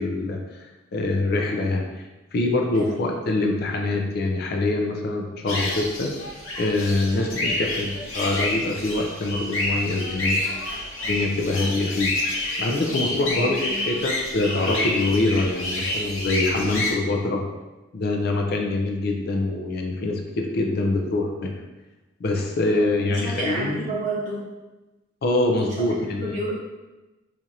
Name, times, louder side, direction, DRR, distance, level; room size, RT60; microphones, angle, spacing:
voice 1, 0.0-6.1 6.6-10.4 11.0-12.1 12.6-17.4 17.9-21.5 22.2-23.9 25.2-26.4, left 2 dB, 50° left, 2 dB, 0.4 m, -24 dB
voice 2, 2.8-3.1 13.4-13.9 22.7-24.6 25.8-26.5, right 2 dB, 40° right, -6 dB, 1.0 m, -31 dB
sound 1, 5.5-16.9, left 1 dB, 75° left, 0.8 m, -28 dB
4.4 x 2.5 x 2.7 m, 1.1 s
head